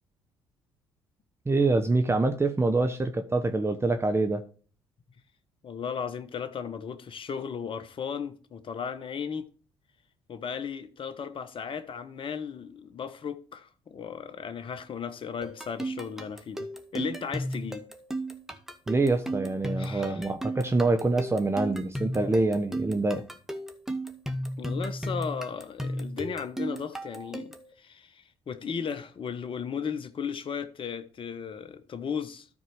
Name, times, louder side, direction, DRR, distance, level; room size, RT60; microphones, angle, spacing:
voice 1, 1.5-4.4 18.9-23.2, right 3 dB, 20° right, 1.1 m, -25 dB
voice 2, 5.6-9.5 10.3-17.8 19.8-20.3 24.6-32.5, left 6 dB, 45° left, 1.1 m, -36 dB
sound 1, 15.4-27.7, right 1 dB, 5° right, 1.7 m, -35 dB
13.0 x 4.6 x 4.7 m
hypercardioid pair, 50°, 12 cm